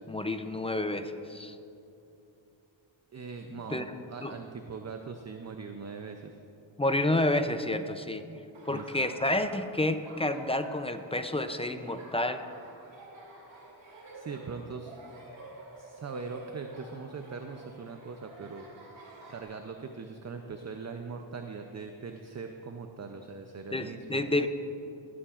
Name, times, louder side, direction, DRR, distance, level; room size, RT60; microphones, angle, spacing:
voice 1, 0.1-1.6 3.7-3.8 4.2-4.3 6.8-8.3 8.7-12.4 23.7-24.5, left 1 dB, 15° left, 8 dB, 0.4 m, -29 dB
voice 2, 3.1-6.3 8.7-9.1 14.1-15.0 15.8-18.7 19.3-24.3, right 5 dB, 35° right, 5 dB, 0.6 m, -41 dB
Laughter, 8.5-19.4, right 2 dB, 65° right, 2.4 m, -50 dB
18.5 x 8.5 x 2.4 m, 2.7 s
wide cardioid pair, 80°, 47 cm